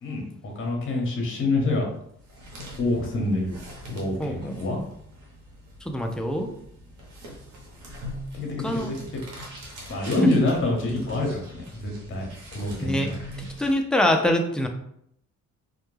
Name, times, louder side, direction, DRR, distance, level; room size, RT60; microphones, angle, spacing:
voice 1, 0.0-1.8 2.8-3.6 3.9-4.8 8.3-9.2 9.9-12.2 12.5-13.2, left 2 dB, 45° left, 0 dB, 0.9 m, -26 dB
sound 1, 2.0-13.8, equal, 90° right, 0.8 m, -43 dB
voice 2, 4.2-4.5 5.9-6.5 8.6-8.9 12.8-13.1 13.6-14.7, left 1 dB, 5° left, 3 dB, 0.3 m, -24 dB
2.2 x 2.1 x 3.0 m, 0.71 s
cardioid pair, 90°, 30 cm